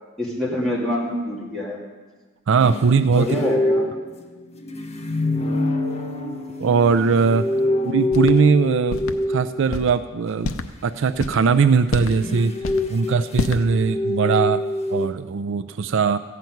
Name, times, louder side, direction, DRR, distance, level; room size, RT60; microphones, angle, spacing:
voice 1, 0.2-1.8 3.1-3.8 7.6-7.8, left 1 dB, ahead, -6 dB, 2.8 m, -25 dB
voice 2, 2.5-3.4 6.6-7.5 7.8-10.5 10.8-12.5 12.9-16.2, right 5 dB, 65° right, 11 dB, 0.4 m, -20 dB
sound 1, 2.6-9.9 11.8-15.1, left 2 dB, 35° left, 1.1 m, -25 dB
sound 2, 8.1-8.4 8.9-9.1 9.7-9.9 10.4-10.7 11.1-11.4 11.9-12.2 12.6-12.9 13.4-13.6, left 3 dB, 85° left, 0.7 m, -27 dB
14.5 x 5.9 x 9.3 m, 1.3 s
head